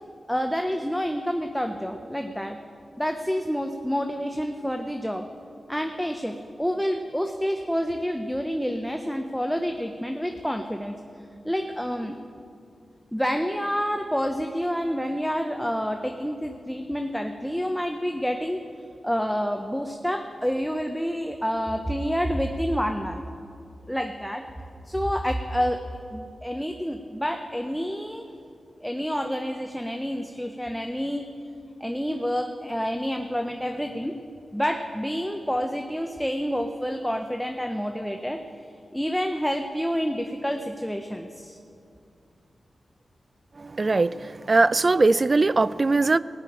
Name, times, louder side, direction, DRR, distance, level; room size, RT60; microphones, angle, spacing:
voice 1, 0.3-2.6 3.0-5.3 5.7-11.0 11.4-12.2 13.1-18.6 19.0-23.2 23.9-24.4 24.9-25.8 26.1-28.3 28.8-31.3 31.8-34.2 34.5-38.4 38.9-41.6, equal, ahead, 4 dB, 0.9 m, -28 dB
voice 2, 43.6-46.2, right 3 dB, 45° right, 17 dB, 0.4 m, -21 dB
18.0 x 6.7 x 8.7 m, 2.4 s
cardioid pair, 55°, 0 cm